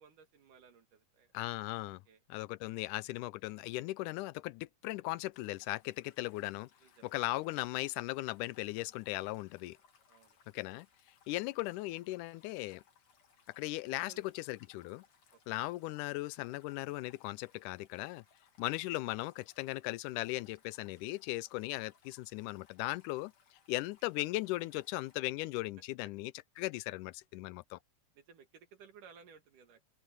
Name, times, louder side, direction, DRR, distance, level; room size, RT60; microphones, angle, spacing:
voice 1, 0.0-1.3 2.1-2.2 6.8-7.1 10.1-10.4 13.8-14.2 15.3-15.7 24.0-24.1 28.2-29.9, right 6 dB, 85° right, 3.8 m, -59 dB
voice 2, 1.3-2.0 2.3-6.7 7.0-9.8 10.5-10.9 11.3-12.8 13.6-15.0 15.5-18.2 18.6-23.3 23.7-26.3 26.6-27.8, left 19 dB, 85° left, 2.1 m, -38 dB
sound 1, 5.3-25.2, left 6 dB, 65° left, 4.0 m, -68 dB
open air
omnidirectional pair, 3.6 m